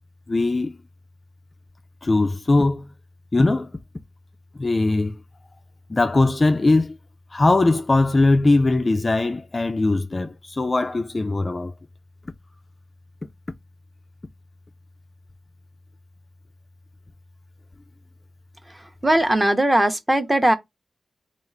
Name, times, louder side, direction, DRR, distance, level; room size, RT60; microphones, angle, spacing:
voice 1, 0.3-0.7 2.0-2.9 3.3-3.7 4.6-5.1 5.9-7.0 7.3-11.7, left 2 dB, 25° left, 0.3 m, -20 dB
voice 2, 18.7-20.6, right 1 dB, 15° right, 0.6 m, -20 dB
3.5 x 2.4 x 4.4 m
wide cardioid pair, 125°, 0 cm